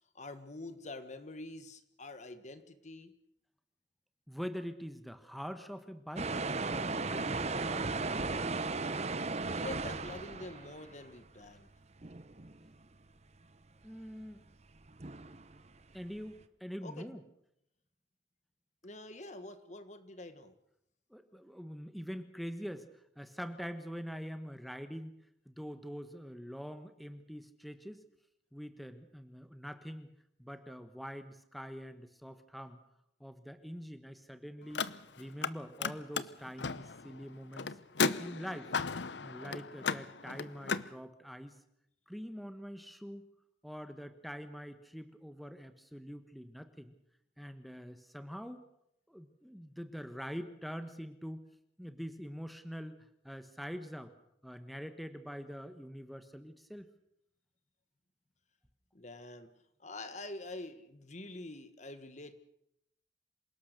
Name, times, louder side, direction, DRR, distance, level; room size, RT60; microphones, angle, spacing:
voice 1, 0.1-3.1 9.4-11.7 16.8-17.1 18.8-20.5 58.9-59.5 59.8-62.3, left 2 dB, 40° left, 10 dB, 1.4 m, -46 dB
voice 2, 4.3-7.9 13.8-14.4 15.9-17.2 21.1-25.2 25.4-28.0 28.5-30.1 30.4-32.8 33.2-34.9 35.2-37.8 38.2-38.7 39.2-41.6 42.1-43.2 43.6-46.9 47.4-48.6 49.1-51.5 51.8-54.1 54.4-56.9, equal, ahead, 9 dB, 1.2 m, -44 dB
sound 1, 6.1-11.0 11.4-11.7 12.0-12.7 14.4-14.5 14.9-15.8, right 3 dB, 35° right, 0.9 m, -36 dB
Car, 34.6-35.5 35.8-40.9, left 5 dB, 80° left, 0.9 m, -35 dB
27.0 x 18.0 x 6.7 m, 0.76 s
head